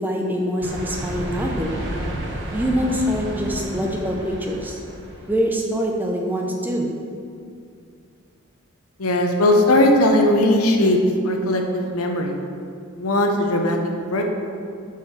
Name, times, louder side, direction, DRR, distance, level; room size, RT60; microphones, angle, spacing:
voice 1, 0.0-1.8 2.5-4.8 5.3-6.9, equal, 10° right, 0 dB, 0.5 m, -24 dB
sound 1, 0.6-5.5, right 1 dB, 50° right, 0.8 m, -31 dB
voice 2, 9.0-11.0 11.2-12.4 13.0-13.8 14.1-14.2, left 1 dB, 85° left, 3 dB, 0.8 m, -18 dB
6.9 x 4.6 x 4.7 m, 2.4 s
head